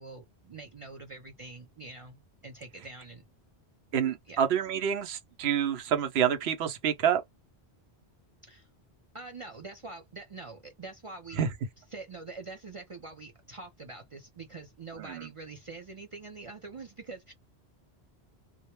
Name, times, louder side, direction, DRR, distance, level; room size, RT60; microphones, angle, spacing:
voice 1, 0.0-3.3 4.3-4.4 8.4-8.7 9.1-11.5 11.9-17.3, right 3 dB, 45° right, 0.4 m, -45 dB
voice 2, 3.9-7.2 11.3-11.5 15.0-15.3, right 8 dB, 75° right, 0.8 m, -28 dB
2.2 x 2.0 x 2.9 m
omnidirectional pair, 1.1 m